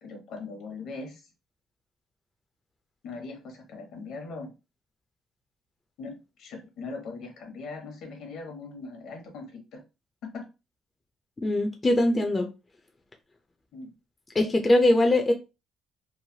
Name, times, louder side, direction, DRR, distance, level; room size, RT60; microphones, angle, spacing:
voice 1, 0.0-1.3 3.0-4.5 6.0-9.8 10.2-10.5 13.7-13.9, left 3 dB, 70° left, 4 dB, 0.9 m, -40 dB
voice 2, 11.4-12.5 14.3-15.3, left 1 dB, 20° left, 3 dB, 0.4 m, -21 dB
3.1 x 2.2 x 2.7 m, 0.27 s
cardioid pair, 140°, 0 cm